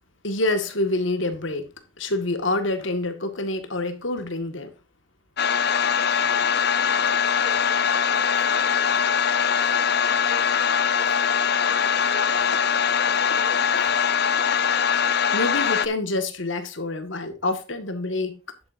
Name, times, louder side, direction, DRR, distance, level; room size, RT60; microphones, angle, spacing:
voice 1, 0.2-1.7 2.0-4.7 15.3-18.4, left 2 dB, 85° left, 1.9 m, -27 dB
sound 1, 5.4-15.9, left 7 dB, 55° left, 0.7 m, -22 dB
voice 2, 6.9-9.0 9.3-12.9 13.2-13.7, right 2 dB, 30° right, 4.7 m, -45 dB
10.5 x 8.7 x 2.7 m
head